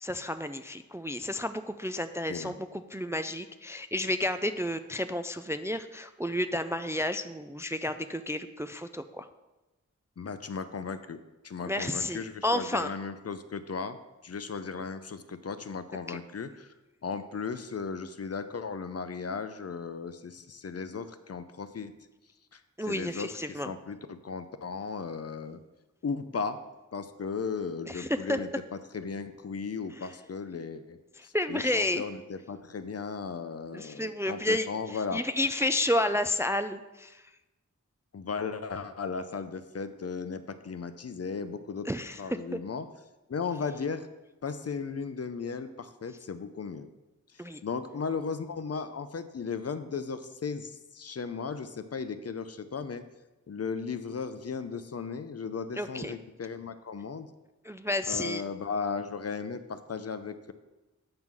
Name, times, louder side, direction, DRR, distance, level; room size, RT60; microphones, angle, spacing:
voice 1, 0.0-9.3 11.6-12.9 16.1-16.2 22.8-23.7 27.8-28.4 30.0-30.1 31.2-32.0 33.7-37.2 41.9-42.6 47.4-47.6 55.8-56.2 57.6-58.4, left 1 dB, 10° right, 10 dB, 0.3 m, -31 dB
voice 2, 10.2-14.0 14.2-16.7 17.0-21.9 22.5-25.6 26.0-26.6 26.9-31.0 31.2-35.2 38.1-41.9 42.2-42.9 43.3-44.1 44.4-46.9 47.3-53.0 53.5-57.3 58.1-60.5, left 5 dB, 50° left, 11 dB, 0.5 m, -36 dB
7.8 x 3.7 x 6.0 m, 1.1 s
wide cardioid pair, 55°, 31 cm